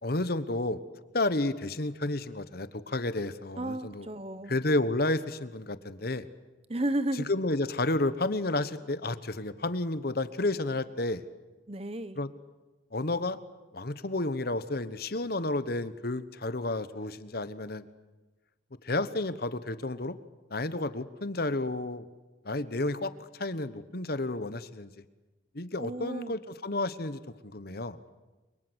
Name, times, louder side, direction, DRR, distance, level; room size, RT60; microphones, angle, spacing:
voice 1, 0.0-0.8 1.1-4.1 4.5-6.3 7.3-11.2 12.2-12.3 12.9-13.4 13.7-17.8 18.8-20.1 20.5-22.1 22.4-24.9 25.5-28.0, left 2 dB, 55° left, 13 dB, 1.2 m, -31 dB
voice 2, 3.6-4.6 6.7-7.3 11.7-12.2 25.8-26.4, right 1 dB, 30° right, 14 dB, 1.1 m, -33 dB
30.0 x 23.5 x 8.1 m, 1.2 s
head